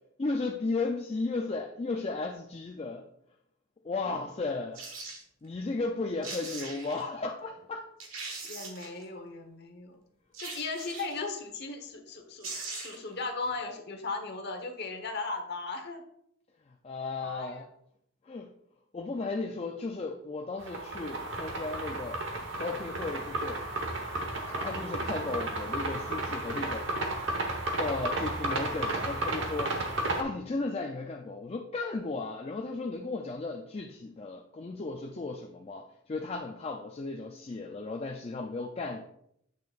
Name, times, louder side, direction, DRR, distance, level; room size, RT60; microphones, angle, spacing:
voice 1, 0.2-3.0 3.8-4.8 5.4-7.9 16.8-17.7 18.3-18.5 18.9-22.2 22.6-23.6 24.4-26.9 27.8-29.7 30.2-39.1, left 3 dB, 30° left, 0.4 m, -35 dB
sound 1, 4.7-5.2 5.9-6.0 6.2-7.0 7.6-7.7 8.0-9.0 10.3-11.3 12.1-12.2 12.4-13.1 13.5-13.6, right 3 dB, 80° right, 1.5 m, -41 dB
voice 2, 8.5-10.0 10.4-16.0 17.2-17.6, left 3 dB, 55° left, 1.0 m, -37 dB
sound 2, 20.6-30.2, right 2 dB, 60° right, 1.1 m, -33 dB
8.4 x 6.5 x 2.4 m
head